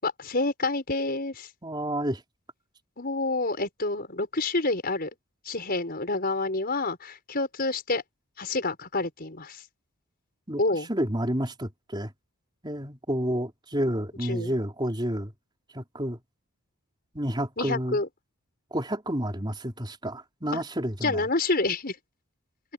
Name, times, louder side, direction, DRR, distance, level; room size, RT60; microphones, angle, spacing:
voice 1, 0.0-1.5 3.0-5.1 5.4-8.0 8.4-9.6 10.6-10.9 14.2-14.5 17.6-18.1 20.5-20.6 21.0-22.0, left 2 dB, 40° left, 5.7 m, -28 dB
voice 2, 1.6-2.2 10.5-12.1 12.6-15.3 15.7-16.2 17.1-18.0 18.7-21.2, equal, 20° right, 4.2 m, -30 dB
head